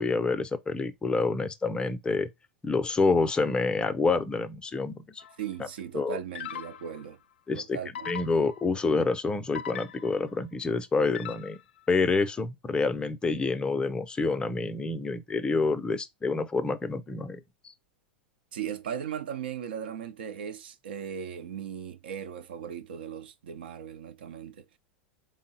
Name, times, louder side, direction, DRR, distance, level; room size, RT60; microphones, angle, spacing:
voice 1, 0.0-2.3 2.6-5.2 5.9-6.2 7.5-7.8 8.1-11.6 11.9-17.4, left 4 dB, 15° left, 0.5 m, -27 dB
sound 1, 5.2-5.5 6.4-7.1 8.0-8.8 9.6-10.4 11.2-11.8, left 9 dB, 80° left, 0.4 m, -40 dB
voice 2, 5.4-7.2 7.5-8.3 18.5-24.6, right 8 dB, 75° right, 0.5 m, -38 dB
3.7 x 2.0 x 4.0 m
hypercardioid pair, 100°, 6 cm